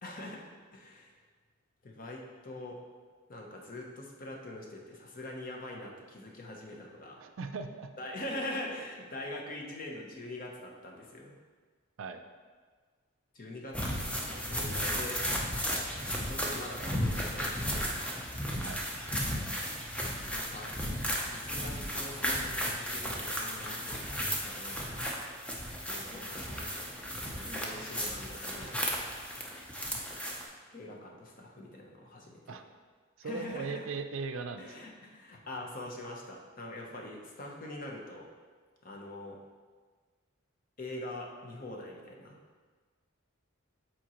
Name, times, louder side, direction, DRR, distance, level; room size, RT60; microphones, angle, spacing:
voice 1, 0.0-1.2 1.8-2.8 3.3-7.2 8.0-11.3 13.3-15.2 16.3-18.0 20.3-20.7 21.2-25.0 25.9-26.9 27.3-29.0 30.7-32.6 33.2-33.9 34.6-38.3 38.8-39.4 40.8-42.4, left 1 dB, 40° left, 0 dB, 0.8 m, -43 dB
voice 2, 7.2-7.9 12.0-12.2 15.7-15.9 18.6-18.8 32.5-32.6 33.2-34.9, right 4 dB, 70° right, 7 dB, 0.4 m, -39 dB
sound 1, 13.7-30.4, equal, 5° left, 0.5 m, -34 dB
7.4 x 4.4 x 3.0 m, 1.5 s
head